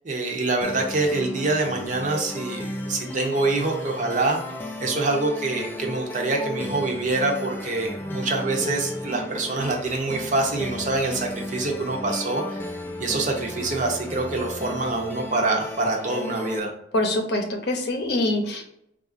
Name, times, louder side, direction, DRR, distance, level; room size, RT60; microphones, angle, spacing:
voice 1, 0.0-4.4 4.8-12.7 13.0-16.7, right 2 dB, 40° right, 1 dB, 0.7 m, -25 dB
sound 1, 0.6-16.6, left 1 dB, 10° left, 0.3 m, -34 dB
voice 2, 16.9-18.6, left 1 dB, 60° left, 3 dB, 0.7 m, -24 dB
3.9 x 2.5 x 2.5 m, 0.76 s
head